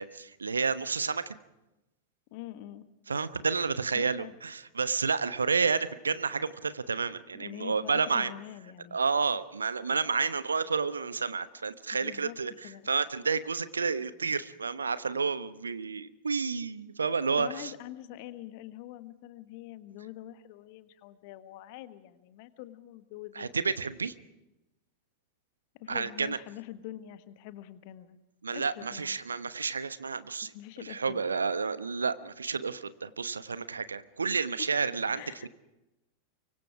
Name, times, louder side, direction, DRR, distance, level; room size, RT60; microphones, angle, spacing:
voice 1, 0.0-1.3 3.1-8.3 8.9-17.7 23.4-24.1 25.9-26.4 28.4-30.5 30.8-35.5, right 5 dB, 75° right, 14 dB, 1.1 m, -30 dB
voice 2, 2.3-2.9 3.9-4.3 7.3-9.0 11.9-12.4 12.6-12.8 17.4-23.5 25.7-28.2 28.5-29.2 30.5-31.2 34.6-34.7 35.2-35.5, left 14 dB, 45° left, 11 dB, 1.5 m, -44 dB
24.5 x 24.0 x 4.8 m, 0.95 s
figure-of-eight pair, 90°, 0 cm